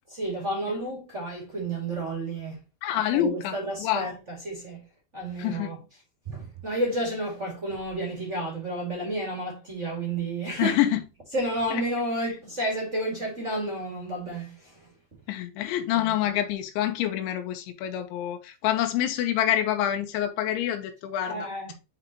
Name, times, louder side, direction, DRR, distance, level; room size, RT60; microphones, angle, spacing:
voice 1, 0.1-2.6 3.1-4.8 5.1-5.8 6.2-10.8 11.3-14.9 15.9-16.1 21.3-21.7, right 1 dB, 35° right, 1.2 m, -31 dB
voice 2, 2.8-4.1 5.4-5.7 10.6-11.0 11.7-11.8 15.3-21.5, left 12 dB, 90° left, 3.3 m, -27 dB
7.9 x 5.2 x 2.9 m
omnidirectional pair, 5.3 m